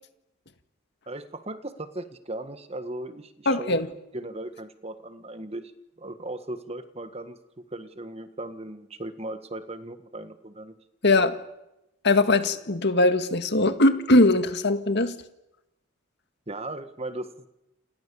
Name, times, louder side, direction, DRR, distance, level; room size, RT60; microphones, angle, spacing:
voice 1, 1.1-3.8 4.1-5.7 6.0-7.4 7.7-10.7 16.5-17.5, right 1 dB, 30° right, 10 dB, 1.6 m, -37 dB
voice 2, 3.5-3.9 11.0-11.4 12.0-15.1, left 2 dB, 55° left, 9 dB, 1.9 m, -21 dB
29.5 x 27.5 x 7.1 m, 0.89 s
head